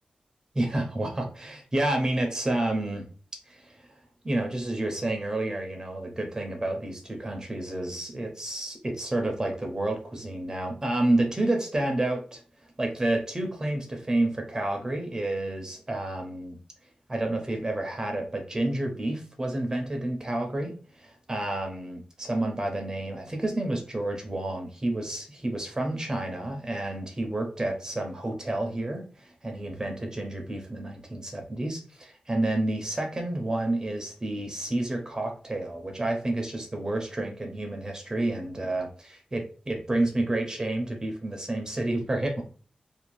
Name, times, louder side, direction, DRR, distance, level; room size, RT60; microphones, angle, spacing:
voice 1, 0.5-3.1 3.5-3.8 4.2-12.4 12.8-16.6 17.1-42.4, right 1 dB, 25° right, 3 dB, 0.5 m, -30 dB
2.5 x 2.1 x 3.0 m, 0.40 s
wide cardioid pair, 105°, 3 cm